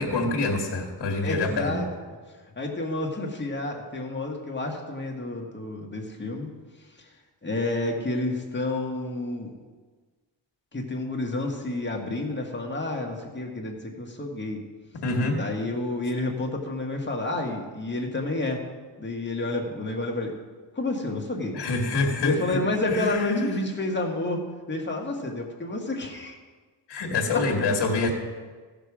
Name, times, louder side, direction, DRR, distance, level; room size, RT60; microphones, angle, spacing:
voice 1, 0.0-1.8 15.0-15.4 21.5-23.6 26.9-28.1, left 3 dB, 65° left, 0 dB, 1.9 m, -26 dB
voice 2, 1.2-1.9 2.6-6.5 7.4-9.5 10.7-14.6 15.3-18.6 19.0-20.3 20.7-21.6 22.2-24.4 24.7-26.4, left 2 dB, 25° left, 1 dB, 1.8 m, -30 dB
15.5 x 6.8 x 5.0 m, 1.4 s
wide cardioid pair, 110°, 43 cm